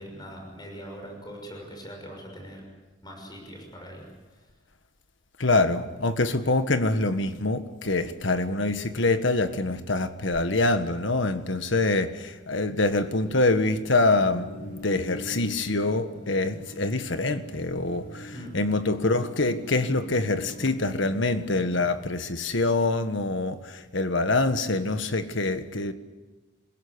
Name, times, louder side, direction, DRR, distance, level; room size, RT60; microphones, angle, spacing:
voice 1, 0.0-2.6 3.0-4.1 18.3-18.5, equal, 20° left, 6.2 m, -41 dB
voice 2, 5.4-25.9, left 2 dB, 65° left, 1.6 m, -25 dB
sound 1, 12.9-22.1, right 2 dB, 45° right, 2.2 m, -48 dB
Singing, 14.2-20.8, left 1 dB, 40° left, 3.0 m, -44 dB
27.5 x 17.0 x 9.9 m
head